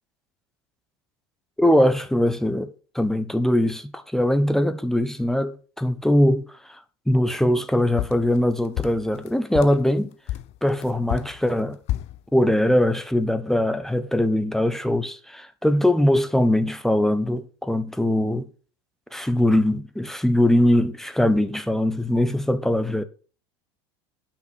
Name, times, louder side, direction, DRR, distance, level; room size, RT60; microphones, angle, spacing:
voice 1, 1.6-6.8 7.1-10.1 10.6-11.8 12.3-18.5 19.1-23.0, left 1 dB, 5° left, 1.1 m, -21 dB
sound 1, 8.0-9.8 10.3-12.2, left 15 dB, 50° left, 0.7 m, -30 dB
9.4 x 5.8 x 6.0 m
hypercardioid pair, 85°, 13 cm